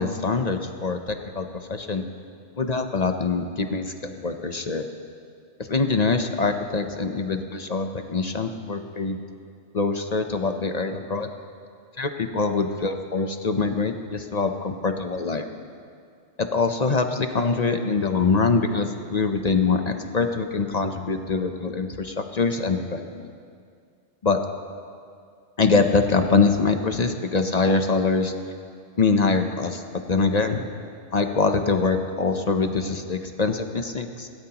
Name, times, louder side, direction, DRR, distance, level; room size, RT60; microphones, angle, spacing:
voice 1, 0.0-2.0 2.6-4.9 5.6-9.2 9.7-11.3 12.0-15.4 16.4-23.3 24.2-24.4 25.6-28.3 29.0-30.6 31.1-34.3, left 4 dB, 40° left, 6 dB, 0.7 m, -24 dB
21.5 x 17.0 x 2.9 m, 2.2 s
omnidirectional pair, 1.2 m